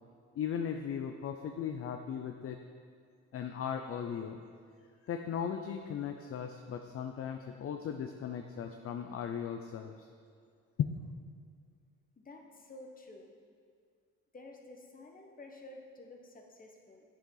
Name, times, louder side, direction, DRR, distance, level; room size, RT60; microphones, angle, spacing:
voice 1, 0.4-2.6 3.3-4.4 5.1-9.9 10.8-11.0, left 8 dB, 50° left, 6 dB, 0.5 m, -37 dB
voice 2, 12.2-13.3 14.3-17.0, left 2 dB, 30° left, 2 dB, 1.1 m, -51 dB
8.1 x 7.1 x 3.9 m, 2.1 s
cardioid pair, 90°, 30 cm